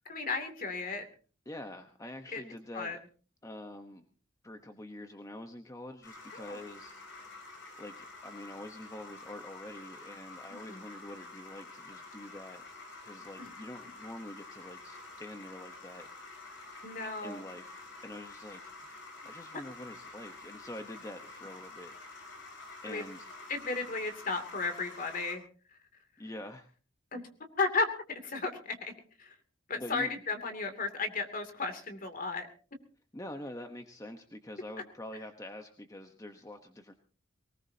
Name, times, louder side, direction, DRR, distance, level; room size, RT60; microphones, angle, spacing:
voice 1, 0.1-1.0 2.3-2.4 2.7-3.0 6.3-6.6 10.5-10.8 13.4-13.5 16.8-17.4 22.9-23.0 23.5-25.4 27.1-27.2 27.6-27.9 28.2-28.9 29.2-29.3 29.7-32.5, left 3 dB, 45° left, 7 dB, 2.7 m, -34 dB
voice 2, 1.5-3.0 3.4-4.1 4.4-6.9 7.2-7.5 7.8-12.6 13.0-16.1 17.2-18.6 19.2-22.0 22.8-23.3 26.2-26.7 29.7-30.1 33.1-36.9, left 1 dB, 15° left, 6 dB, 1.0 m, -45 dB
sound 1, 6.0-25.4, left 3 dB, 65° left, 5.5 m, -49 dB
24.0 x 18.5 x 2.8 m, 0.38 s
head